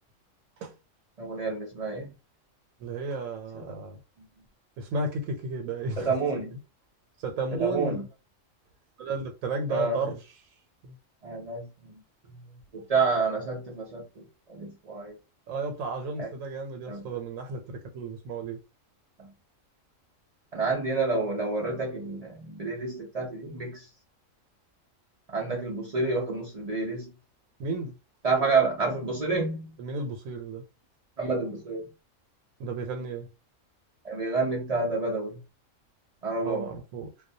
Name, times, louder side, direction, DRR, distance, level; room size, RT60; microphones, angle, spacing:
voice 1, 1.2-2.1 6.0-6.6 7.5-8.0 9.7-10.0 11.2-11.7 12.7-14.0 14.5-15.1 16.2-16.3 16.9-17.1 19.2-19.3 20.5-23.9 25.3-27.1 28.2-29.7 31.2-31.8 34.0-35.4 36.2-36.7, right 3 dB, 70° right, 0.3 m, -29 dB
voice 2, 2.8-4.0 4.8-6.1 7.2-8.0 9.0-10.2 10.8-11.0 15.5-18.6 27.6-28.0 29.8-30.6 32.6-33.3 36.4-37.1, right 3 dB, 90° right, 1.0 m, -33 dB
2.2 x 2.1 x 2.6 m
omnidirectional pair, 1.4 m